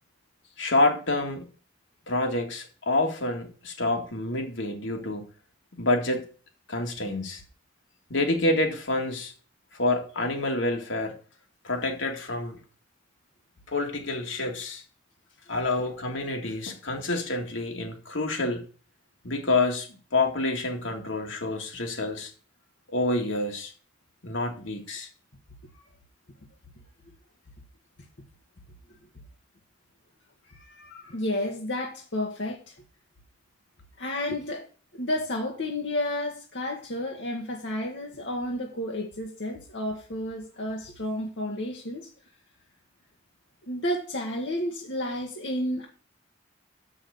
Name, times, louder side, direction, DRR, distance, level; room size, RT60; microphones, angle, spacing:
voice 1, 0.6-1.4 2.1-5.3 5.8-6.3 6.7-7.4 8.1-9.3 9.7-11.1 11.6-12.6 13.7-14.8 15.5-18.6 19.2-22.3 22.9-23.7 24.2-25.1, left 2 dB, 90° left, 2.1 m, -27 dB
voice 2, 30.5-32.7 34.0-34.6 34.9-42.1 43.7-45.9, left 1 dB, 70° left, 1.5 m, -31 dB
6.8 x 6.3 x 7.7 m
head